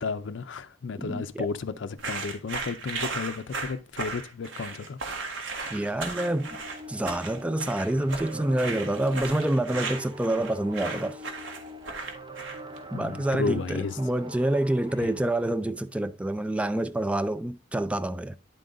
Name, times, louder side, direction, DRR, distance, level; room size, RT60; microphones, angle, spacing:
voice 1, 0.0-5.0 12.9-14.0 15.0-15.1, left 4 dB, 70° left, 0.4 m, -33 dB
voice 2, 0.9-1.5 5.7-6.6 6.9-11.2 12.9-18.4, right 1 dB, 5° right, 0.3 m, -27 dB
sound 1, 2.0-12.8, right 4 dB, 80° right, 1.4 m, -36 dB
sound 2, 6.1-15.5, equal, 25° right, 0.8 m, -43 dB
10.0 x 3.8 x 3.7 m
head